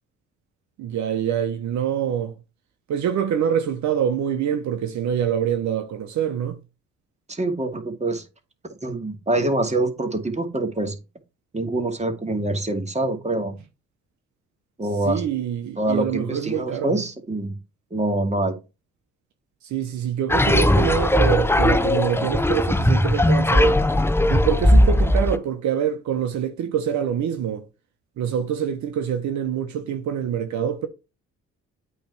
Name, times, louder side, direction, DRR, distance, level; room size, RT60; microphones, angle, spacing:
voice 1, 0.8-2.3 2.9-6.6 15.0-17.0 19.6-23.8 24.3-27.7 28.2-30.9, right 9 dB, 70° right, 1.0 m, -25 dB
voice 2, 7.3-8.2 8.7-11.0 11.5-13.5 14.8-15.2 15.8-17.5 17.9-18.6, right 2 dB, 20° right, 2.3 m, -25 dB
sound 1, 20.3-25.4, left 1 dB, 10° left, 0.8 m, -18 dB
8.6 x 3.3 x 6.0 m
supercardioid pair, 50°, 30 cm